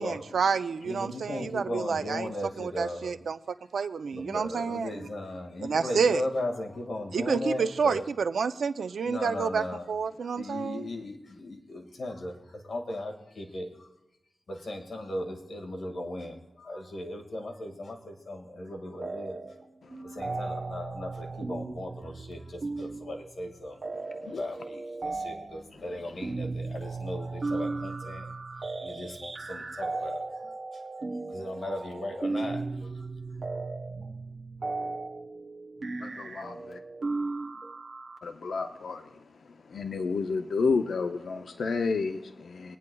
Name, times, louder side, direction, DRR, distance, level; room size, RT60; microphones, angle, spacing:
voice 1, 0.0-2.3 2.6-3.4 3.7-5.1 5.6-6.2 7.1-10.9, right 5 dB, 85° right, 0.5 m, -29 dB
voice 2, 0.8-3.2 4.1-8.1 9.0-9.9 10.2-13.9 14.5-19.4 20.0-23.8 24.3-28.3 28.8-30.2 30.7-30.8 31.3-33.1, left 1 dB, 55° left, 1.8 m, -37 dB
sound 1, 19.0-19.6 19.9-38.2, right 3 dB, 45° right, 1.0 m, -36 dB
voice 3, 36.0-36.8 38.2-39.2 39.7-42.8, left 4 dB, 70° left, 0.5 m, -31 dB
22.5 x 9.6 x 2.3 m
wide cardioid pair, 115°, 0 cm